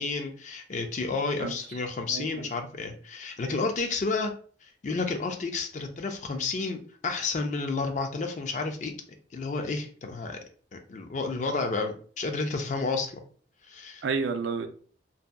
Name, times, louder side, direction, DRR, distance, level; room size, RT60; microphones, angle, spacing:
voice 1, 0.0-4.3 4.6-8.9 9.3-10.4 10.7-13.2 13.7-14.0, left 3 dB, 40° left, 5 dB, 0.4 m, -31 dB
voice 2, 2.1-2.5 3.4-3.6 14.0-14.7, right 5 dB, 70° right, 7 dB, 0.3 m, -31 dB
2.7 x 2.3 x 2.2 m, 0.44 s
head